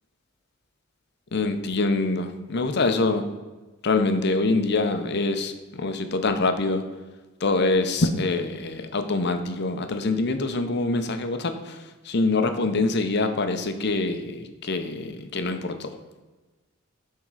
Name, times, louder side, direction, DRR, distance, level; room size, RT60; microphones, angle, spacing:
voice 1, 1.3-3.2 3.8-6.8 7.4-11.8 12.0-15.9, left 3 dB, 55° left, 7 dB, 0.7 m, -25 dB
9.5 x 3.7 x 4.7 m, 1.2 s
head